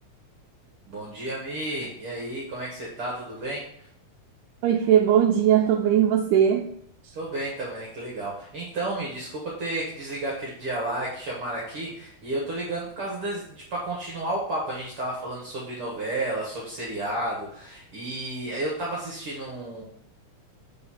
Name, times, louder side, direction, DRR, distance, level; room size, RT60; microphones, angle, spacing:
voice 1, 0.9-3.9 7.1-19.8, right 1 dB, 55° right, -4 dB, 1.8 m, -32 dB
voice 2, 4.6-6.7, right 9 dB, 90° right, 1 dB, 2.1 m, -19 dB
4.8 x 3.9 x 5.6 m, 0.68 s
omnidirectional pair, 3.5 m